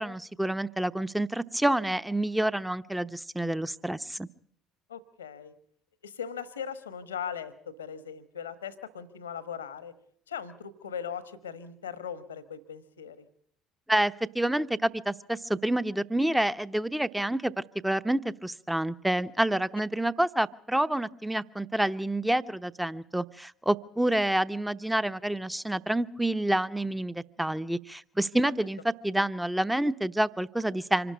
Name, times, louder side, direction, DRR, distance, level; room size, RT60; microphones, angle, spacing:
voice 1, 0.0-4.3 13.9-17.5 17.8-31.1, right 1 dB, 5° right, 15 dB, 0.8 m, -28 dB
voice 2, 4.9-5.5 6.0-9.9 10.3-13.2, left 7 dB, 80° left, 15 dB, 1.2 m, -39 dB
25.5 x 12.0 x 8.6 m, 0.62 s
figure-of-eight pair, 55°, 0 cm